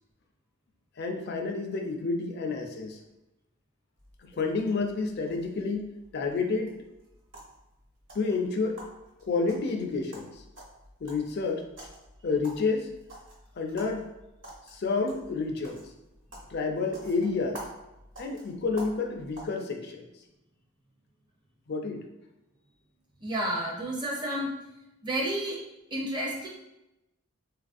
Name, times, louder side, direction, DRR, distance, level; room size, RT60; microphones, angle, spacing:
voice 1, 1.0-3.0 4.2-6.7 8.1-8.8 9.2-10.4 11.0-11.7 12.2-12.9 13.6-14.1 14.7-15.8 16.5-17.6 18.2-20.1 21.7-22.0, left 4 dB, 50° left, 3 dB, 0.4 m, -30 dB
sound 1, 4.0-19.5, right 1 dB, 55° right, 1.1 m, -50 dB
voice 2, 23.2-24.5 25.0-25.6 25.9-26.5, right 1 dB, 20° right, -2 dB, 0.6 m, -30 dB
3.9 x 2.5 x 2.5 m, 0.93 s
head